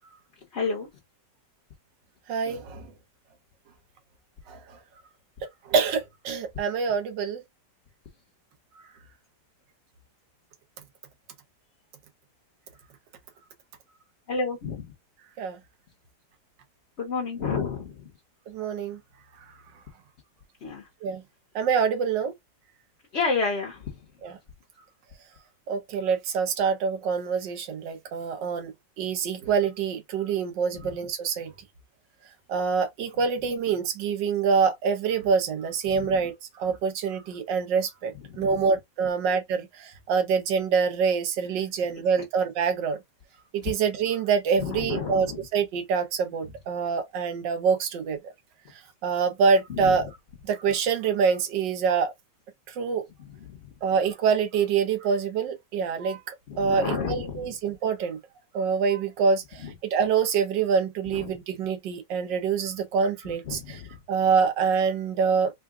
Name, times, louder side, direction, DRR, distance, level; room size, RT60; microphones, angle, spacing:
voice 1, 0.5-0.9 14.3-14.8 17.0-18.1 20.6-20.9 23.1-23.9 30.7-30.8 35.9-36.1 38.3-38.6 44.6-45.4 49.7-50.0 53.4-53.6 56.5-57.5 59.6-59.7 61.1-61.3 63.5-63.9, left 5 dB, 45° left, 1.1 m, -30 dB
voice 2, 2.3-2.9 4.5-4.8 5.7-7.4 15.4-15.6 18.5-19.0 21.0-21.2 21.5-22.3 24.2-24.4 25.7-28.7 29.0-31.5 32.5-43.0 43.5-48.2 49.0-50.1 50.4-52.1 52.7-53.0 53.8-58.2 58.5-63.8 64.1-65.5, right 6 dB, 90° right, 1.5 m, -26 dB
3.8 x 2.3 x 3.5 m
omnidirectional pair, 1.9 m